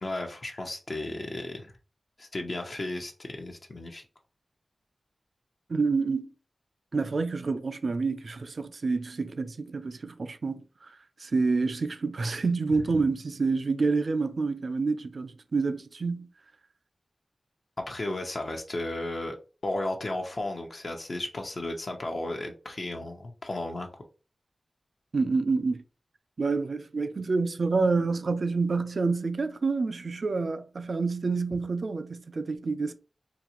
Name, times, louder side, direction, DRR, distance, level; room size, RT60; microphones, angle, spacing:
voice 1, 0.0-1.7 2.2-4.0 17.8-19.4 19.6-23.9, left 2 dB, 55° left, 0.7 m, -34 dB
voice 2, 5.7-6.3 6.9-10.9 11.2-16.3 25.1-25.8 26.4-32.9, right 4 dB, 65° right, 0.4 m, -28 dB
3.9 x 2.4 x 2.9 m
cardioid pair, 50°, 0 cm